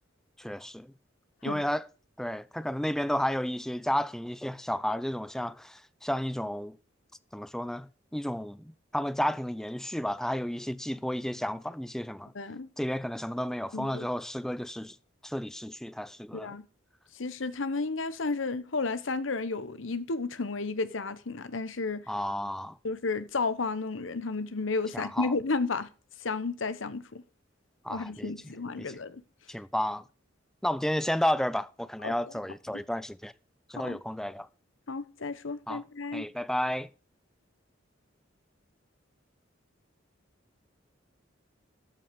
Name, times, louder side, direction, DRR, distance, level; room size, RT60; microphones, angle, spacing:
voice 1, 0.4-0.9 1.4-1.8 2.2-6.8 7.3-12.3 12.8-15.0 15.2-16.5 22.1-22.8 24.9-25.3 27.8-28.3 28.8-28.9 29.5-30.0 30.6-33.3 33.7-34.5 35.7-35.8 36.1-36.9, equal, 5° left, 0.4 m, -32 dB
voice 2, 12.3-12.7 13.7-14.0 16.3-16.6 17.1-22.0 22.8-25.9 26.2-27.2 27.9-29.2 32.0-32.1 32.7-32.8 33.8-34.0 34.9-36.3, left 3 dB, 75° left, 0.9 m, -32 dB
13.0 x 5.9 x 5.1 m
head